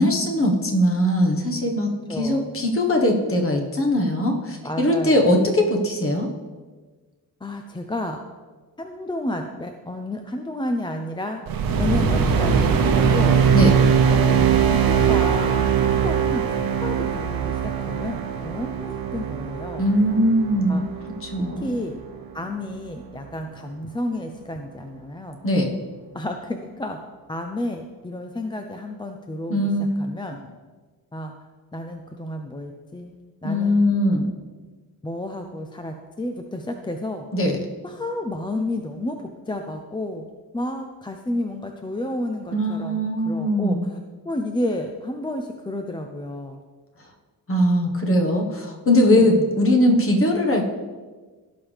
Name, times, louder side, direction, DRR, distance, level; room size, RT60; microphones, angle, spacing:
voice 1, 0.0-6.3 13.5-13.7 19.8-20.8 21.2-21.7 25.4-25.7 29.5-29.9 33.4-34.3 37.3-37.6 42.5-43.8 47.5-50.7, left 1 dB, 35° left, 2 dB, 1.5 m, -20 dB
voice 2, 2.1-2.6 4.6-5.4 7.4-8.2 8.8-11.4 11.8-13.4 14.1-19.8 20.7-20.8 21.6-22.0 22.3-25.4 26.1-27.0 27.3-30.4 31.1-31.3 31.7-33.2 33.4-34.0 35.0-37.3 37.8-40.3 40.5-44.0 44.2-46.6 49.1-49.5, left 1 dB, 15° left, 4 dB, 0.5 m, -31 dB
sound 1, 11.5-21.9, right 7 dB, 65° right, 1.0 m, -21 dB
16.0 x 5.6 x 3.5 m, 1.4 s
cardioid pair, 120°, 37 cm